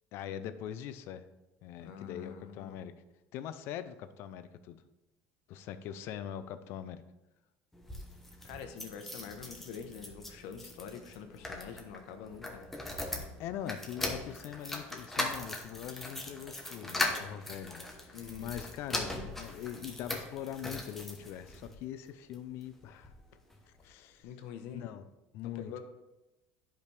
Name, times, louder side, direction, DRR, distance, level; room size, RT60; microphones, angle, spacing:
voice 1, 0.1-1.3 1.6-2.9 3.3-4.8 5.5-7.0 13.4-23.1 23.8-24.3 24.7-25.1 25.3-25.8, left 10 dB, 55° left, 12 dB, 0.5 m, -42 dB
voice 2, 1.8-2.8 8.4-12.7 18.1-18.5 24.2-24.8 25.4-25.8, left 7 dB, 75° left, 6 dB, 1.0 m, -45 dB
sound 1, 7.7-21.7 22.3-23.2 23.5-23.6 23.8-23.9, left 1 dB, 5° left, 0.9 m, -40 dB
11.0 x 5.1 x 3.3 m, 0.99 s
cardioid pair, 150°, 5 cm